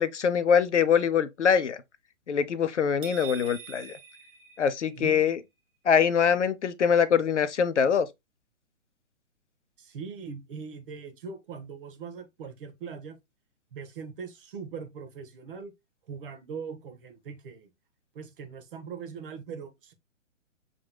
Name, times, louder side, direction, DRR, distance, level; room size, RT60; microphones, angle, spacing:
voice 1, 0.0-1.8 2.3-3.9 4.6-5.4 5.8-8.1, left 7 dB, 65° left, 0.8 m, -23 dB
sound 1, 3.0-5.2, right 7 dB, 10° right, 1.2 m, -45 dB
voice 2, 5.0-5.4 9.8-13.2 13.7-15.7 16.1-17.7 18.1-19.9, right 6 dB, 45° right, 1.3 m, -41 dB
6.1 x 3.8 x 2.2 m
figure-of-eight pair, 130°, 39 cm